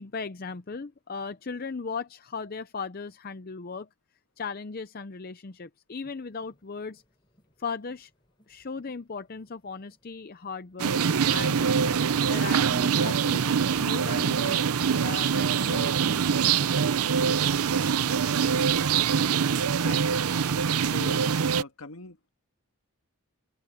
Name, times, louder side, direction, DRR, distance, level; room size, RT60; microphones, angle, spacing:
voice 1, 0.0-3.9 4.4-7.0 7.6-8.1 8.5-10.9 11.3-12.0 12.3-14.7 15.0-16.9, left 5 dB, 40° left, 0.6 m, -37 dB
sound 1, 6.0-16.4, equal, 20° left, 6.4 m, -67 dB
sound 2, 10.8-21.6, right 6 dB, 80° right, 0.6 m, -24 dB
voice 2, 20.8-22.3, left 3 dB, 70° left, 1.6 m, -41 dB
open air
head